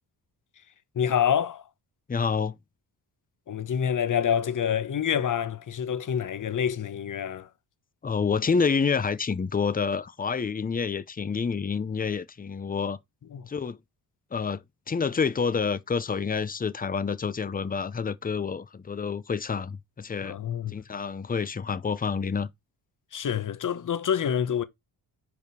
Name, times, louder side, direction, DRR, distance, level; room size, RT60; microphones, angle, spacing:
voice 1, 0.9-1.6 3.5-7.5 13.3-13.5 20.2-20.8 23.1-24.6, left 8 dB, 50° left, 0.9 m, -27 dB
voice 2, 2.1-2.6 8.0-13.0 13.5-13.8 14.3-14.6 14.9-20.4 20.7-22.5, left 5 dB, 20° left, 0.6 m, -28 dB
5.1 x 5.0 x 4.6 m
cardioid pair, 90°, 41 cm